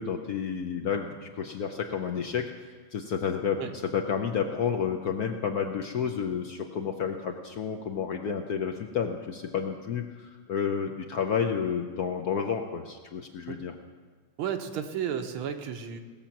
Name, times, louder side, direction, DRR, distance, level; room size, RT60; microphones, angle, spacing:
voice 1, 0.0-2.4 2.9-3.6 3.9-13.7, left 7 dB, 65° left, 4 dB, 0.9 m, -30 dB
voice 2, 14.4-16.0, right 8 dB, 85° right, 6 dB, 1.7 m, -33 dB
18.0 x 7.2 x 5.9 m, 1.5 s
omnidirectional pair, 2.3 m